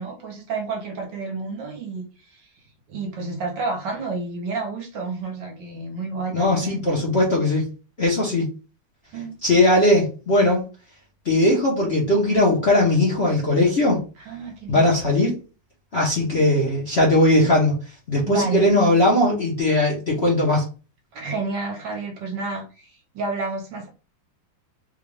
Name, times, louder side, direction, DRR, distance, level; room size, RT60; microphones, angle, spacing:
voice 1, 0.0-2.5 2.9-6.8 9.1-9.4 14.2-14.9 18.3-18.7 21.1-23.9, right 3 dB, 70° right, 1 dB, 1.6 m, -30 dB
voice 2, 6.3-7.6 8.0-8.5 9.4-10.6 11.2-14.0 14.7-15.4 15.9-17.7 18.1-20.6, left 1 dB, 45° left, -3 dB, 0.9 m, -19 dB
3.8 x 2.4 x 3.1 m, 0.33 s
omnidirectional pair, 2.1 m